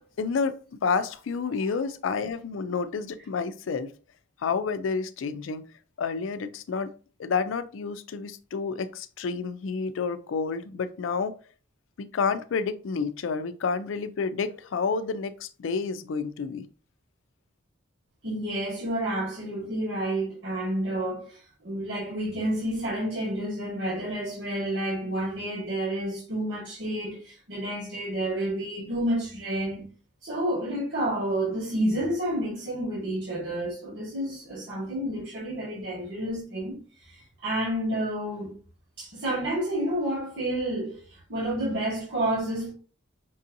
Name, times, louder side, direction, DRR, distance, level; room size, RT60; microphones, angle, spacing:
voice 1, 0.2-0.6 0.8-3.9 4.4-5.6 6.0-6.9 7.2-11.3 12.0-16.7, left 5 dB, 85° left, 0.4 m, -29 dB
voice 2, 18.2-29.8 30.2-38.5 39.0-42.7, right 1 dB, 70° right, 1.4 m, -30 dB
5.3 x 2.7 x 2.5 m
head